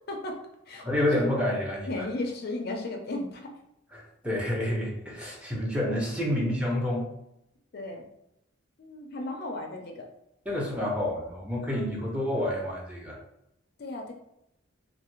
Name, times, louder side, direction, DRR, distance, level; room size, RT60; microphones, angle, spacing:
voice 1, 0.1-0.4 0.7-1.0 1.9-3.5 6.3-6.6 7.7-8.1 8.8-10.0 13.8-14.1, left 2 dB, 50° left, 2 dB, 0.4 m, -35 dB
voice 2, 0.8-2.1 3.9-7.1 10.5-13.2, left 1 dB, 5° right, -4 dB, 0.5 m, -29 dB
2.7 x 2.4 x 3.0 m, 0.82 s
head